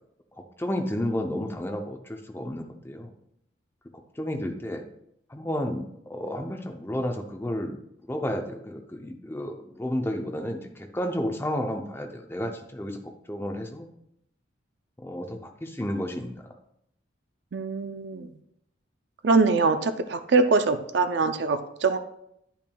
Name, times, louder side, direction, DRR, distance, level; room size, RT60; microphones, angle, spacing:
voice 1, 0.4-3.1 4.2-4.8 5.3-7.8 8.1-13.0 13.3-13.9 15.0-16.5, left 1 dB, 10° left, 4 dB, 0.5 m, -32 dB
voice 2, 17.5-18.3 19.2-22.0, right 4 dB, 60° right, 9 dB, 0.5 m, -23 dB
10.5 x 5.7 x 2.3 m, 0.76 s
head